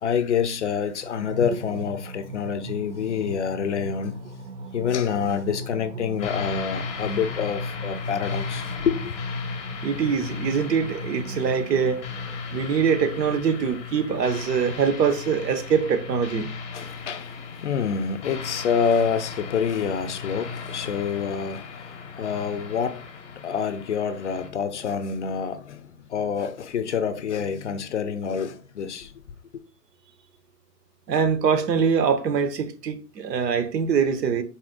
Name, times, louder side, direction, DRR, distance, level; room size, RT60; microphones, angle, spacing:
voice 1, 0.0-4.2 4.7-9.1 16.7-29.1 29.5-29.6, left 7 dB, 50° left, 0.4 m, -27 dB
sound 1, 1.2-12.4, right 1 dB, 50° right, 0.6 m, -38 dB
sound 2, 6.2-24.5, left 5 dB, 20° left, 0.7 m, -36 dB
voice 2, 9.8-12.0 12.5-16.5 31.1-34.4, right 6 dB, 80° right, 0.9 m, -23 dB
4.2 x 2.5 x 3.6 m
hypercardioid pair, 155°, 48 cm